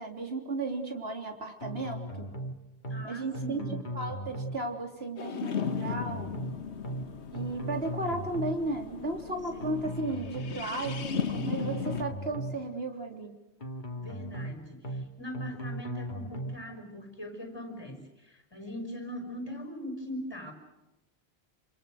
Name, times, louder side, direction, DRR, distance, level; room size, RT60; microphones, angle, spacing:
voice 1, 0.0-2.3 3.0-3.6 4.0-6.3 7.3-13.4, right 2 dB, 65° right, 3 dB, 3.8 m, -35 dB
sound 1, 1.6-2.5 2.8-3.1 3.3-4.6 5.6-6.5 6.8-7.1 7.3-8.6 9.6-10.5 10.8-11.1 11.3-12.6 13.6-14.5 14.8-15.1 15.3-16.6, right 1 dB, 45° left, 2.4 m, -37 dB
voice 2, 2.9-3.9 9.5-10.0 14.0-20.5, equal, 20° left, 5 dB, 5.9 m, -41 dB
sound 2, 5.2-12.0, left 6 dB, 85° left, 1.4 m, -36 dB
28.0 x 27.0 x 6.5 m, 0.96 s
omnidirectional pair, 1.1 m